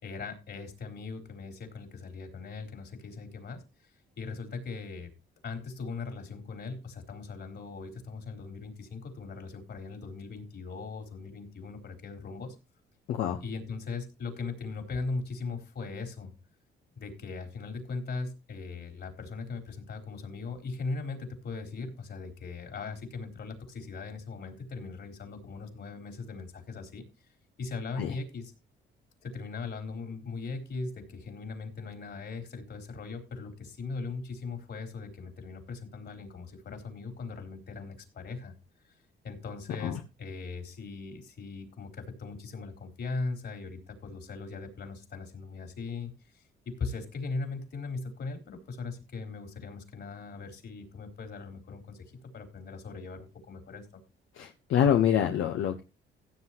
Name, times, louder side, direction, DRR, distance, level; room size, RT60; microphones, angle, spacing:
voice 1, 0.0-3.9 4.2-5.1 5.4-12.5 13.4-16.3 17.0-27.0 27.6-28.5 29.2-38.5 39.2-52.0 52.3-54.0, left 4 dB, 60° left, 4 dB, 4.0 m, -39 dB
voice 2, 13.1-13.4 28.0-28.1 39.8-40.0 54.3-55.8, left 9 dB, 80° left, 5 dB, 1.1 m, -26 dB
16.0 x 7.8 x 3.0 m, 0.28 s
cardioid pair, 90°, 20 cm